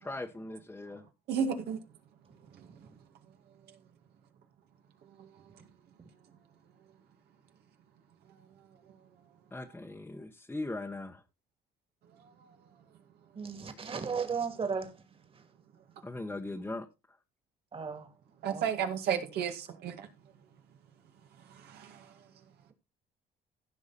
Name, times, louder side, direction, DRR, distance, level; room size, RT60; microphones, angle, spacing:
voice 1, 0.0-1.0 9.5-11.2 16.0-16.9, left 2 dB, 10° left, 1.2 m, -39 dB
voice 2, 1.3-1.8 2.5-2.7 12.2-12.5 18.4-20.1 21.6-22.1, right 7 dB, 70° right, 2.1 m, -33 dB
voice 3, 13.4-15.0 17.7-18.1 18.5-18.6, right 5 dB, 35° right, 2.5 m, -35 dB
15.5 x 5.9 x 4.1 m
cardioid pair, 110°, 17 cm